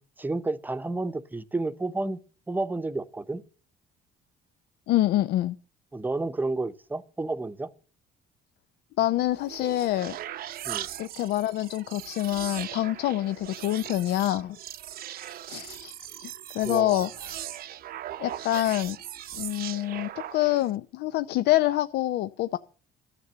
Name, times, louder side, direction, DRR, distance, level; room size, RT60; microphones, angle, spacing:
voice 1, 0.2-2.2 2.5-3.4 5.9-7.7 10.6-10.9 16.6-17.1, right 2 dB, 10° right, 0.8 m, -31 dB
voice 2, 4.9-5.6 9.0-10.2 11.0-14.6 15.5-17.4 18.2-19.0 19.3-22.6, left 14 dB, 75° left, 0.6 m, -26 dB
sound 1, 9.3-20.8, right 12 dB, 65° right, 0.7 m, -39 dB
12.5 x 6.8 x 8.7 m
cardioid pair, 110°, 17 cm